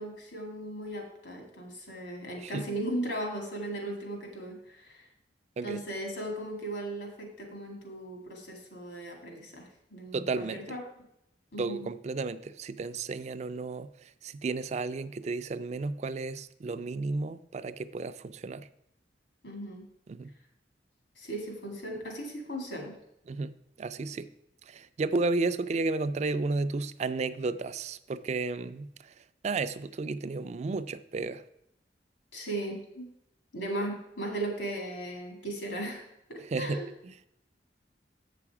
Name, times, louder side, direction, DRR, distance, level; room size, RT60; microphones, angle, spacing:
voice 1, 0.0-5.0 5.6-10.8 11.5-11.9 19.4-19.8 21.2-23.0 32.3-33.1 33.5-36.0 36.3-36.9, right 1 dB, 75° left, 1 dB, 2.3 m, -37 dB
voice 2, 10.1-10.6 11.6-18.7 20.1-20.3 23.3-24.3 24.7-29.1 29.4-31.4 36.5-36.8, right 3 dB, 35° right, 14 dB, 0.3 m, -33 dB
7.8 x 5.9 x 4.8 m, 0.79 s
head